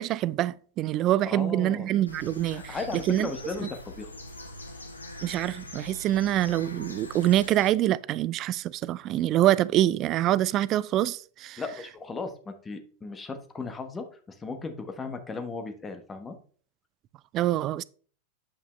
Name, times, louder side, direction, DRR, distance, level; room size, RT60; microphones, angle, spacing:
voice 1, 0.0-2.8 3.1-3.3 5.2-11.6 17.3-17.8, right 13 dB, 35° right, 0.3 m, -25 dB
voice 2, 1.3-1.9 2.5-4.1 11.6-16.4, left 3 dB, 15° left, 1.2 m, -36 dB
sound 1, 2.1-7.7, left 1 dB, 80° left, 1.1 m, -42 dB
8.9 x 5.3 x 3.2 m
figure-of-eight pair, 90°, 0 cm